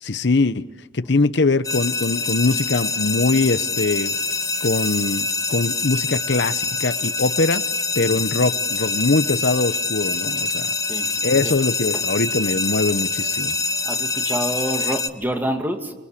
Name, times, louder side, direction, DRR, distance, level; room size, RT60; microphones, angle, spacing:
voice 1, 0.0-0.6 0.9-4.3 4.6-7.6 8.0-10.7 11.2-13.6, left 3 dB, 65° left, 0.8 m, -22 dB
sound 1, 1.6-15.1, left 4 dB, 20° left, 1.0 m, -25 dB
sound 2, 3.5-6.7, right 10 dB, 45° right, 1.5 m, -41 dB
voice 2, 13.8-15.9, equal, 10° right, 2.3 m, -27 dB
26.0 x 24.0 x 8.4 m
head